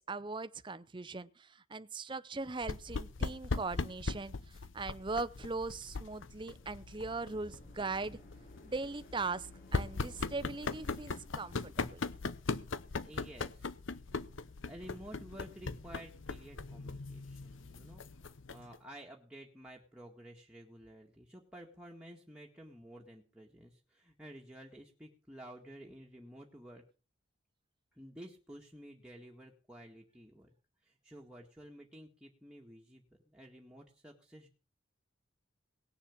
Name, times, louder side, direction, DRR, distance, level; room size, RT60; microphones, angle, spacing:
voice 1, 0.0-8.2 8.6-12.0, right 3 dB, 25° right, 0.6 m, -40 dB
sound 1, 2.6-18.8, left 3 dB, 75° left, 0.8 m, -40 dB
sound 2, 5.5-12.1, left 1 dB, 50° left, 3.1 m, -59 dB
voice 2, 13.0-13.7 14.7-26.8 27.9-30.5 30.8-34.5, right 1 dB, 5° right, 1.9 m, -52 dB
19.0 x 7.2 x 7.4 m
head